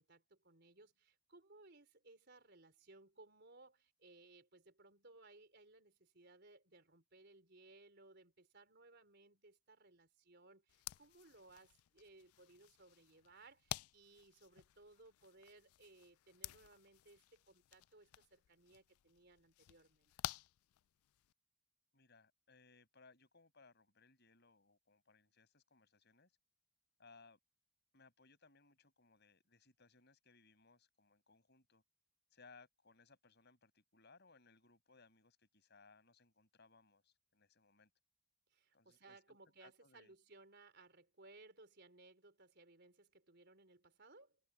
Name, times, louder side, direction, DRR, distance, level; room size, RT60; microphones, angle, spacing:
voice 1, 0.0-20.1 38.5-44.4, right 2 dB, 50° right, 4.3 m, -63 dB
sound 1, 10.7-21.3, left 14 dB, 90° left, 0.3 m, -52 dB
voice 2, 21.9-26.3 27.0-27.4 27.9-31.8 32.3-37.9 38.7-40.1, left 4 dB, 50° left, 6.5 m, -66 dB
head